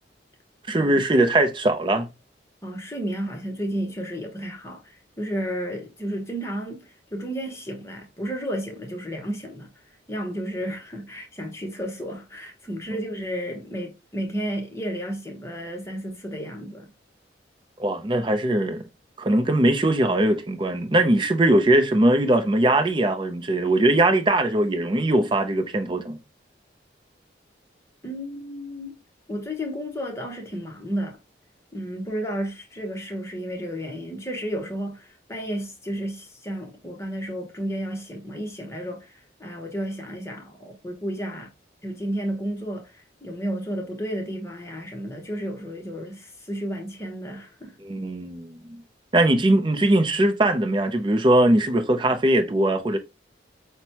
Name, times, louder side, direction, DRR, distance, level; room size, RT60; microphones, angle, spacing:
voice 1, 0.7-2.1 17.8-18.8 19.2-26.2 47.8-48.6 49.1-53.0, right 1 dB, 25° right, 0.5 m, -20 dB
voice 2, 2.6-16.9 28.0-29.0 29.3-31.2 31.7-41.5 41.8-47.8, equal, 15° left, 0.9 m, -32 dB
6.0 x 2.2 x 2.8 m
head